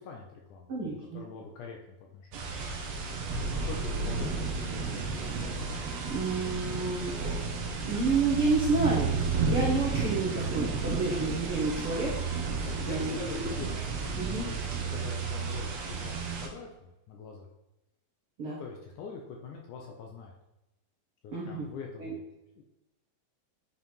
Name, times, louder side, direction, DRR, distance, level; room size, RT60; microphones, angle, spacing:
voice 1, 0.0-0.7 1.1-2.6 3.3-5.2 12.6-14.2 14.4-17.5 18.4-20.3 21.2-22.2 22.6-22.7, left 5 dB, 75° left, 1 dB, 2.0 m, -44 dB
voice 2, 0.7-1.2 6.0-7.1 7.9-9.2 9.4-12.2 12.9-13.5 14.1-14.5 18.4-18.6 21.3-21.7 22.0-22.1, right 3 dB, 60° right, -6 dB, 1.5 m, -30 dB
sound 1, 2.3-16.5, right 4 dB, 85° right, 1.4 m, -32 dB
9.0 x 4.2 x 4.5 m, 0.93 s
omnidirectional pair, 4.2 m